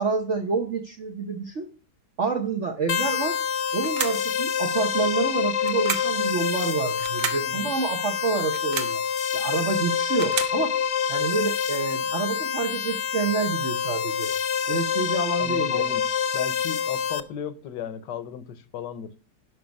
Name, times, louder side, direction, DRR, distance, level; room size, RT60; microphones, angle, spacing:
voice 1, 0.0-1.7 2.2-3.4 3.7-9.0 9.3-10.7 11.1-14.3 14.7-15.9, right 4 dB, 50° right, 1.2 m, -28 dB
sound 1, 2.9-17.2, left 7 dB, 60° left, 0.9 m, -26 dB
sound 2, 3.8-4.3 5.6-6.2 7.0-7.5 8.4-9.0 9.9-10.6, right 6 dB, 70° right, 1.8 m, -31 dB
voice 2, 7.4-7.7 15.4-16.1 16.3-19.2, left 8 dB, 75° left, 1.5 m, -35 dB
11.5 x 5.9 x 5.3 m
omnidirectional pair, 1.9 m